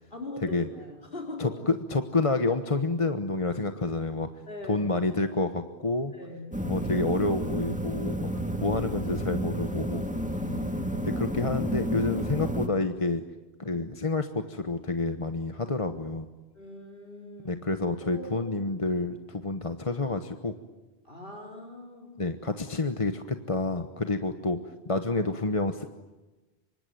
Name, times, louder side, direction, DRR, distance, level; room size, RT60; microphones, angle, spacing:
voice 1, 0.1-1.7 4.5-5.0 6.1-6.8 8.3-8.8 10.3-10.9 16.5-17.6 18.0-18.5 21.0-22.3, left 2 dB, 55° left, 3 dB, 4.0 m, -42 dB
voice 2, 1.4-4.3 4.7-6.1 6.7-8.3 8.6-10.1 11.0-13.2 13.6-16.3 17.4-20.5 22.2-24.6 24.9-25.9, left 3 dB, 30° left, 8 dB, 1.2 m, -29 dB
sound 1, 6.5-12.7, equal, 5° right, 2.0 m, -31 dB
26.0 x 24.5 x 9.3 m, 1.1 s
omnidirectional pair, 1.1 m